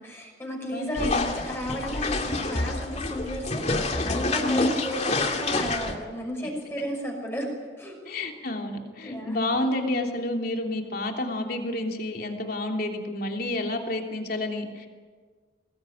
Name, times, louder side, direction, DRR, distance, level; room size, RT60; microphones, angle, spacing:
voice 1, 0.0-1.1 1.5-7.5 7.8-8.0 9.0-9.4, equal, 15° left, 0 dB, 5.8 m, -33 dB
voice 2, 0.7-1.3 4.4-4.7 8.0-14.9, left 1 dB, 55° left, 2 dB, 3.2 m, -29 dB
sound 1, 1.0-6.0, left 2 dB, 40° left, 2.4 m, -28 dB
23.0 x 20.0 x 9.4 m, 1.5 s
head